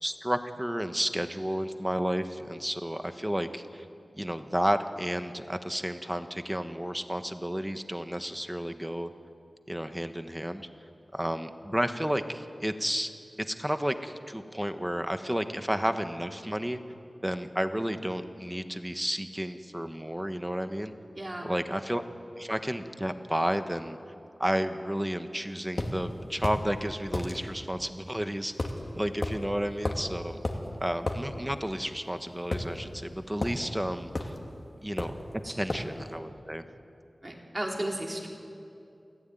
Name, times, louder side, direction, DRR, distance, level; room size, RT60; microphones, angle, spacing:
voice 1, 0.0-3.9 4.1-9.1 9.7-10.7 11.1-13.1 13.5-16.8 17.2-20.9 21.4-22.0 22.4-24.0 24.4-28.5 28.9-30.4 30.8-34.3 34.8-35.1 35.6-36.6, equal, 10° right, 8 dB, 1.3 m, -32 dB
voice 2, 21.1-21.5 35.4-35.5 37.2-38.3, right 1 dB, 30° right, 0 dB, 4.0 m, -34 dB
sound 1, 25.8-25.9 26.4-26.6 27.1-27.3 28.6-28.8 29.2-29.4 29.8-30.1 30.4-30.6 31.1-31.2 32.5-33.1 33.4-33.6 34.1-34.4 35.0-35.2 35.7-35.9, left 2 dB, 50° left, 2.6 m, -31 dB
28.5 x 14.5 x 9.3 m, 2.6 s
wide cardioid pair, 65°, 0 cm